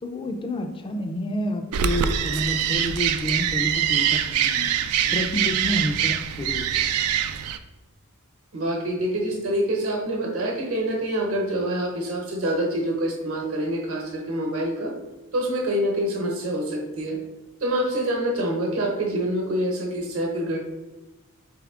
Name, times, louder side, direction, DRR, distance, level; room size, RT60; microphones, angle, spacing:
voice 1, 0.0-4.7 5.1-6.7, equal, 25° left, 5 dB, 0.3 m, -29 dB
sound 1, 1.7-7.6, right 9 dB, 90° right, 0.3 m, -24 dB
voice 2, 8.5-14.9 15.3-17.2 17.6-20.6, right 1 dB, 70° right, 1 dB, 1.0 m, -26 dB
4.2 x 3.5 x 3.5 m, 1.1 s
head